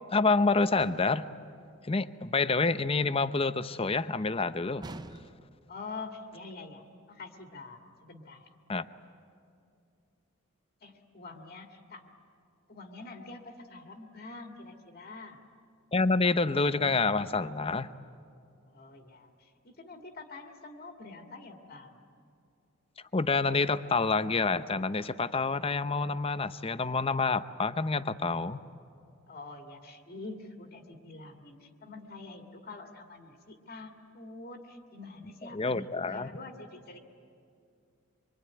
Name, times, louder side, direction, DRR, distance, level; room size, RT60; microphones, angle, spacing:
voice 1, 0.1-1.2 1.9-4.8 8.7-8.9 15.9-17.9 23.1-28.6 35.5-36.3, left 3 dB, 25° left, 13 dB, 0.7 m, -27 dB
sound 1, 0.8-1.3 4.8-5.6, right 2 dB, 20° right, 0.6 m, -45 dB
voice 2, 5.7-8.5 10.8-12.1 12.7-15.4 18.7-22.0 29.3-37.0, left 3 dB, 45° left, 3 dB, 1.9 m, -46 dB
25.0 x 24.0 x 9.5 m, 2.5 s
head